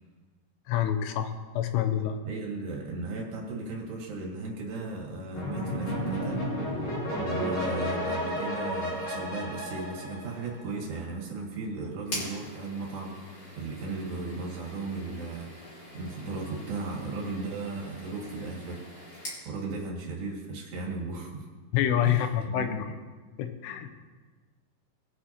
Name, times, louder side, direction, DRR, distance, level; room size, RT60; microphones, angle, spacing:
voice 1, 0.7-2.1 21.7-22.7 23.4-23.9, left 10 dB, 85° left, 7 dB, 2.9 m, -27 dB
voice 2, 1.9-6.5 7.1-15.5 15.9-18.8 19.5-21.5 22.0-22.8, right 3 dB, 80° right, -2 dB, 4.2 m, -36 dB
sound 1, 5.3-10.8, equal, 45° left, 4.3 m, -32 dB
sound 2, 12.0-19.4, left 1 dB, 30° left, 3.0 m, -43 dB
21.5 x 8.0 x 2.9 m, 1.4 s
omnidirectional pair, 4.9 m